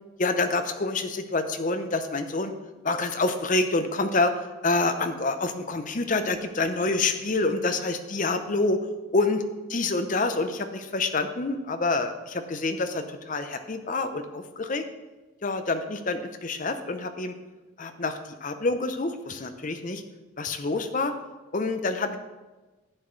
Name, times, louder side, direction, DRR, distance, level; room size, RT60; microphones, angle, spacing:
voice 1, 0.2-2.5 2.8-4.3 4.6-8.8 9.1-9.4 9.7-14.8 15.4-17.3 17.8-20.0 20.4-21.1 21.5-22.2, left 3 dB, 40° left, 8 dB, 0.6 m, -27 dB
11.5 x 8.1 x 3.2 m, 1.2 s
head